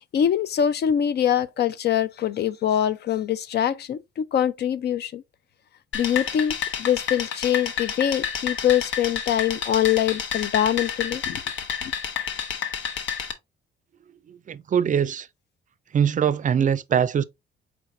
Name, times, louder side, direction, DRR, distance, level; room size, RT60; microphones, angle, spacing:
voice 1, 0.1-5.2 5.9-11.4 11.8-11.9, left 10 dB, 55° left, 0.5 m, -24 dB
sound 1, 5.9-13.3, left 7 dB, 70° left, 0.9 m, -30 dB
voice 2, 14.3-15.3 15.9-17.2, right 8 dB, 40° right, 0.4 m, -22 dB
4.4 x 4.1 x 2.6 m
cardioid pair, 90°, 20 cm